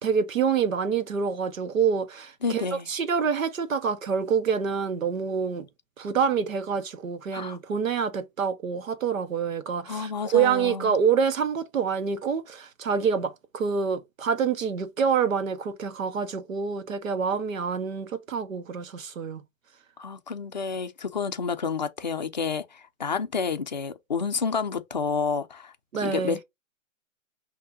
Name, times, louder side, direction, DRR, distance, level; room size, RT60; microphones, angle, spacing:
voice 1, 0.0-5.7 6.0-19.4 25.9-26.4, right 6 dB, 80° right, 1.2 m, -26 dB
voice 2, 2.4-2.9 7.3-7.6 9.9-11.0 20.0-25.7 26.0-26.4, left 5 dB, 35° left, 0.4 m, -30 dB
5.8 x 2.8 x 2.6 m
hypercardioid pair, 170°, 39 cm